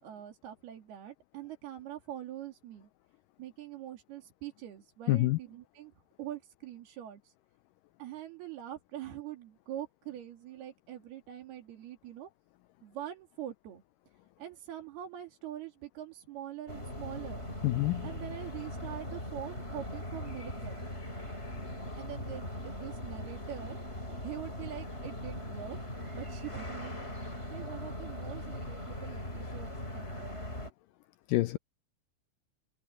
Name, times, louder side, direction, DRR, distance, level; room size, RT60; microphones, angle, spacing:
voice 1, 0.0-2.9 3.4-5.9 6.2-7.3 8.0-12.3 12.8-13.8 14.4-17.4 18.0-20.8 22.0-23.8 24.2-30.4, right 11 dB, 90° right, 4.6 m, -44 dB
voice 2, 5.1-5.4 17.6-18.0 31.3-31.6, left 19 dB, 80° left, 1.9 m, -26 dB
sound 1, 16.7-30.7, left 1 dB, 15° left, 6.4 m, -40 dB
omnidirectional pair, 4.4 m